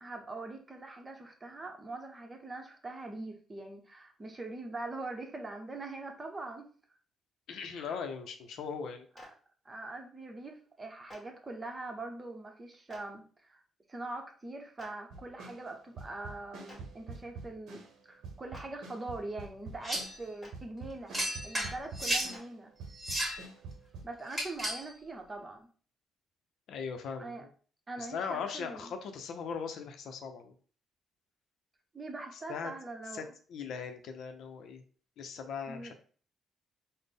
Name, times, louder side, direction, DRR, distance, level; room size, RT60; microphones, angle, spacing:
voice 1, 0.0-6.6 7.7-8.0 9.6-13.6 13.9-21.2 21.4-22.7 24.0-25.7 27.2-27.5 27.9-28.9 31.9-33.3 35.7-35.9, right 2 dB, 25° right, 4 dB, 0.7 m, -43 dB
voice 2, 7.5-9.1 26.7-27.5 28.0-30.5 32.5-32.7 33.1-33.2 33.5-34.8 35.2-35.9, left 6 dB, 75° left, 6 dB, 0.5 m, -39 dB
Clapping, 9.1-9.3 11.1-11.2 12.9-13.0 14.8-14.9 16.7-16.8 18.5-18.6 20.4-20.5 22.3-22.4, left 1 dB, 25° left, 1.4 m, -50 dB
sound 1, 15.1-18.0 18.2-22.5 22.8-24.1, right 4 dB, 80° right, 0.7 m, -47 dB
sound 2, 19.8-20.2 21.1-22.3 22.9-23.4 24.3-24.9, equal, 5° right, 1.5 m, -33 dB
4.1 x 2.0 x 3.4 m, 0.43 s
cardioid pair, 90°, 0 cm